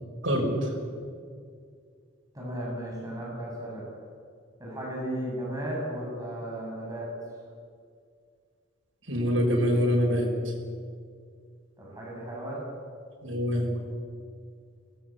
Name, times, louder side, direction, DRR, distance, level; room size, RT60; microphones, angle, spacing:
voice 1, 0.2-0.7 9.1-10.5 13.2-13.7, equal, 80° right, 0 dB, 6.4 m, -25 dB
voice 2, 2.3-3.8 4.6-7.1 11.8-12.6, right 1 dB, 20° right, -3 dB, 7.4 m, -35 dB
24.5 x 19.5 x 8.7 m, 2.2 s
head